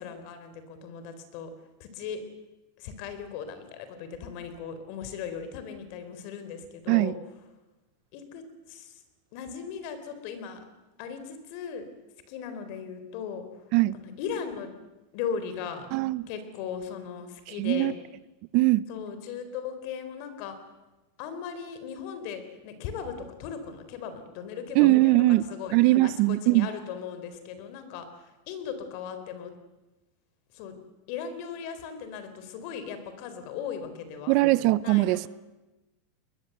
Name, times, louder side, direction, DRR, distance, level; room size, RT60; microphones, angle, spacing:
voice 1, 0.0-1.5 1.8-2.2 2.8-7.1 8.1-9.0 9.3-10.6 11.0-11.8 12.3-13.4 13.9-14.7 15.1-15.9 16.3-17.9 18.9-20.6 21.2-25.7 26.0-29.5 30.5-30.8 31.1-34.4 34.8-35.3, left 7 dB, 55° left, 10 dB, 4.0 m, -38 dB
voice 2, 15.9-16.3 17.5-17.9 18.5-18.8 24.7-25.5 25.7-26.7 34.3-35.3, right 19 dB, 50° right, 19 dB, 0.7 m, -21 dB
21.5 x 21.0 x 8.0 m, 1.1 s
supercardioid pair, 140°, 0 cm